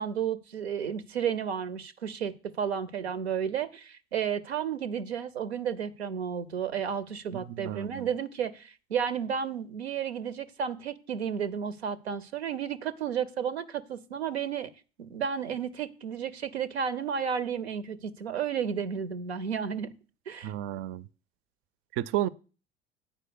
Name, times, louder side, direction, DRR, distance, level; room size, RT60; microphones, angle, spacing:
voice 1, 0.0-14.7 15.0-19.9 20.3-20.5, right 7 dB, 80° right, 0.6 m, -32 dB
voice 2, 7.3-8.1 20.4-21.0 22.0-22.3, right 13 dB, 45° right, 0.4 m, -32 dB
8.8 x 4.8 x 6.8 m
figure-of-eight pair, 60°, 31 cm